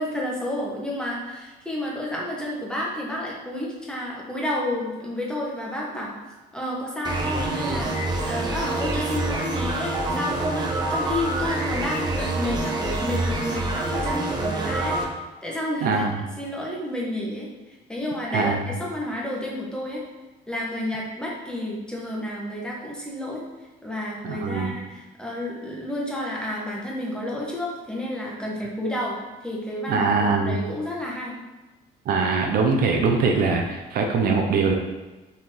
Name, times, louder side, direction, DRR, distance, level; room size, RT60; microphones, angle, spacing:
voice 1, 0.0-6.1 6.5-15.0 15.4-17.5 17.9-20.0 20.5-23.4 23.8-31.3, left 1 dB, 5° left, -4 dB, 1.2 m, -30 dB
sound 1, 7.0-15.0, right 2 dB, 25° right, 0.8 m, -26 dB
voice 2, 15.8-16.1 18.3-18.7 24.2-24.7 29.9-30.6 32.1-34.7, right 4 dB, 65° right, 2 dB, 0.6 m, -22 dB
4.2 x 3.0 x 3.8 m, 1.2 s
cardioid pair, 110°, 17 cm